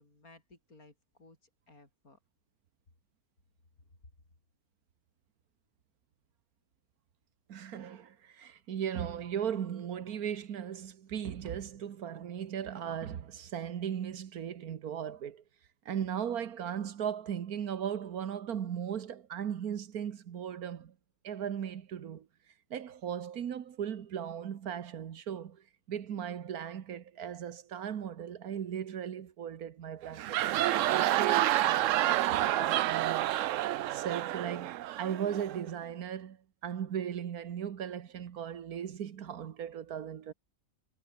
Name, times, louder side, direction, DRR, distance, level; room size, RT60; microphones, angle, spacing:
voice 1, 0.0-2.2, left 2 dB, 75° left, 6.1 m, -59 dB
voice 2, 7.5-15.4 15.9-21.0 21.2-22.3 22.7-33.3 33.9-40.3, right 9 dB, 85° right, 1.6 m, -37 dB
sound 1, 30.0-35.6, right 14 dB, 70° right, 0.9 m, -29 dB
omnidirectional pair, 1.5 m